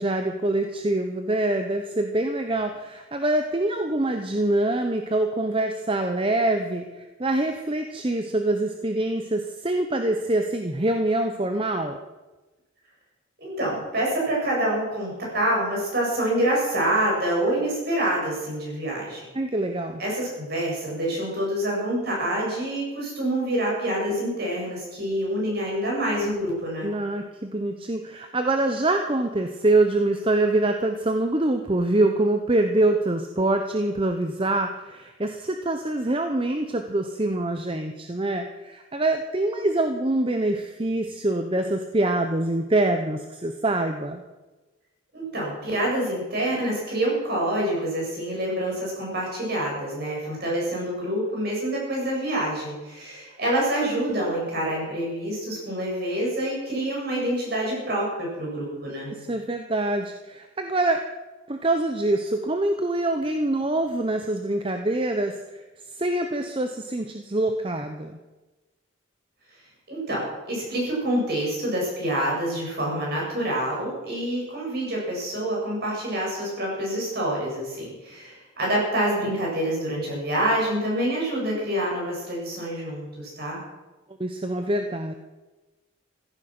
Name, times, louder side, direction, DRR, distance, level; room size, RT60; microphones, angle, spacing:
voice 1, 0.0-12.0 19.3-20.0 26.8-44.2 59.1-61.1 61.5-65.6 65.9-68.2 84.2-85.1, right 2 dB, 25° right, 6 dB, 0.8 m, -25 dB
voice 2, 13.4-19.3 20.0-26.9 45.1-59.1 69.9-83.6, right 1 dB, 50° right, -3 dB, 7.7 m, -27 dB
15.5 x 14.0 x 6.1 m, 1.1 s
head